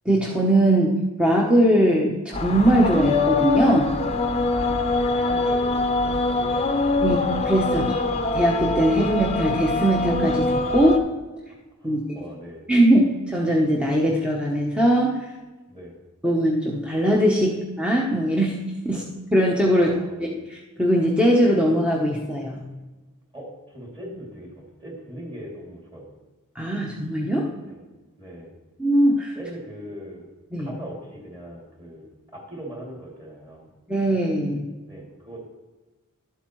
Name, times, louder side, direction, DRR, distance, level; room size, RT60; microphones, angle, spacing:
voice 1, 0.0-4.0 7.0-7.2 7.4-11.1 11.8-12.0 12.7-15.2 16.2-19.0 19.3-22.7 26.5-27.5 28.8-29.4 30.5-30.7 33.9-34.7, right 1 dB, 5° right, -2 dB, 0.8 m, -21 dB
sound 1, 2.3-11.0, left 2 dB, 30° left, 0.7 m, -23 dB
voice 2, 4.5-7.2 11.8-12.6 15.7-15.9 18.9-19.0 19.7-20.2 23.3-26.1 27.6-27.8 28.2-28.6 29.3-30.2 30.6-32.1 32.3-33.7 34.9-35.4, equal, 20° right, -2 dB, 2.6 m, -40 dB
12.0 x 8.0 x 3.1 m, 1.2 s
head